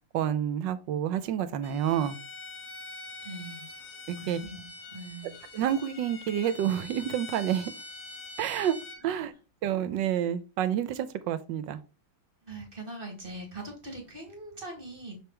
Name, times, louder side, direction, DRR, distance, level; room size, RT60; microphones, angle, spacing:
voice 1, 0.1-2.2 4.1-4.4 5.5-7.7 8.4-8.7 9.0-9.3 9.6-11.8, right 10 dB, 75° right, 1.3 m, -29 dB
Bowed string instrument, 1.6-9.0, left 3 dB, 45° left, 1.1 m, -44 dB
voice 2, 3.2-3.7 4.2-4.6 4.9-5.3 9.0-9.1 12.4-15.2, right 2 dB, 30° right, 2.0 m, -42 dB
6.5 x 3.6 x 4.4 m
omnidirectional pair, 2.0 m